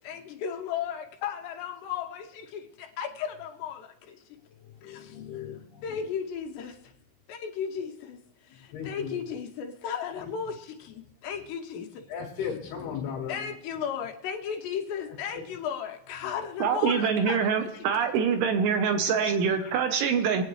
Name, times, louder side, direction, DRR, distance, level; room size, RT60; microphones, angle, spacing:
voice 1, 0.0-4.2 4.8-5.5 5.8-6.8 7.3-8.2 8.5-12.1 13.3-17.7 19.6-19.7, left 7 dB, 75° left, 3 dB, 2.7 m, -35 dB
voice 2, 4.8-6.1 8.7-9.2 10.2-10.3 12.1-13.5 15.3-15.4 16.2-16.3 18.2-18.3 18.6-18.8 19.0-19.3, left 7 dB, 60° left, -1 dB, 3.4 m, -37 dB
voice 3, 16.6-20.4, right 6 dB, 75° right, 6 dB, 3.1 m, -25 dB
25.0 x 9.0 x 3.2 m, 0.80 s
omnidirectional pair, 5.9 m